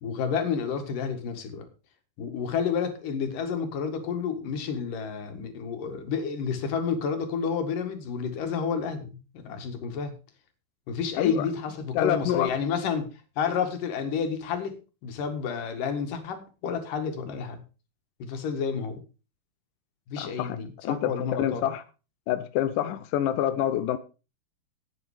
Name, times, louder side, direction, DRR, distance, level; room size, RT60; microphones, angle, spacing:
voice 1, 0.0-1.7 2.2-10.1 10.9-13.1 13.4-14.7 15.0-17.6 18.2-19.0 20.1-21.7, left 6 dB, 60° left, 3.2 m, -30 dB
voice 2, 11.9-12.5 20.2-20.6 20.8-21.1 21.4-21.8 22.3-24.0, left 11 dB, 75° left, 2.0 m, -26 dB
11.0 x 9.2 x 4.9 m
omnidirectional pair, 4.6 m